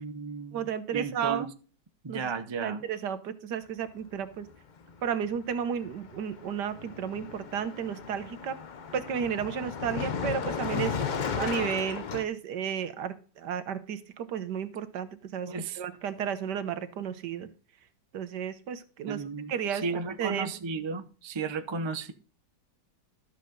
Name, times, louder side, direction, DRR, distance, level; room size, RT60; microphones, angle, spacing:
voice 1, 0.0-1.5 2.0-2.8 15.5-15.8 19.1-22.1, right 4 dB, 40° right, 0.4 m, -34 dB
voice 2, 0.5-1.5 2.1-2.3 2.6-4.5 5.0-8.6 8.9-15.5 15.8-17.5 18.1-19.2 19.5-19.9 20.2-20.5, right 8 dB, 75° right, 1.6 m, -33 dB
Car passing by, 4.8-5.0 5.2-12.2, left 6 dB, 75° left, 0.4 m, -35 dB
12.5 x 7.7 x 3.9 m
omnidirectional pair, 1.9 m